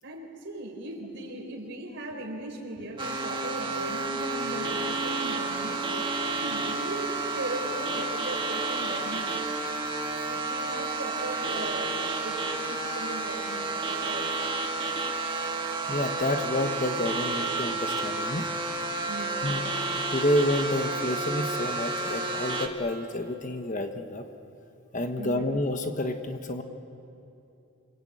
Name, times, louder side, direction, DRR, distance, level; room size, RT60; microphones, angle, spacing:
voice 1, 0.0-9.5 10.3-14.3 19.1-19.7 25.2-25.5, right 1 dB, 55° right, 2 dB, 4.3 m, -38 dB
sound 1, 3.0-22.7, right 3 dB, 25° right, 1.7 m, -31 dB
voice 2, 15.9-18.5 19.4-19.6 20.1-24.2 24.9-26.6, left 1 dB, 35° left, 6 dB, 1.2 m, -29 dB
28.5 x 21.0 x 8.7 m, 2.8 s
head